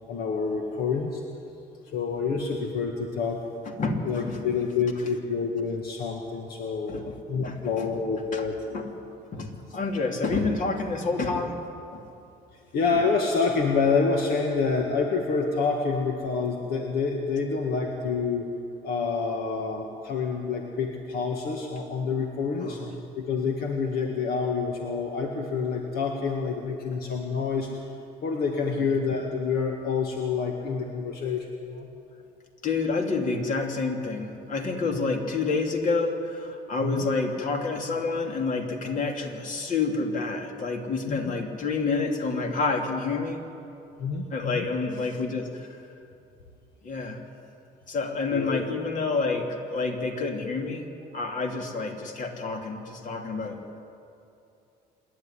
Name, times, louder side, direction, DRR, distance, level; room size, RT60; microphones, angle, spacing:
voice 1, 0.1-1.2 1.9-3.5 4.1-7.0 7.3-8.6 12.7-18.5 18.8-22.8 23.2-27.7 28.2-31.9 34.9-35.0 36.8-37.1 41.1-41.3 44.0-44.7 48.3-48.6, left 5 dB, 70° left, 2 dB, 1.9 m, -27 dB
voice 2, 3.8-4.4 6.9-7.1 7.4-7.9 8.3-8.4 8.7-8.8 9.3-11.6 11.9-12.0 22.6-22.9 32.6-43.4 44.3-45.8 46.8-47.2 47.9-50.9 51.1-53.8, left 3 dB, 50° left, 3 dB, 2.9 m, -28 dB
26.5 x 11.0 x 10.0 m, 2.7 s
cardioid pair, 110°, 17 cm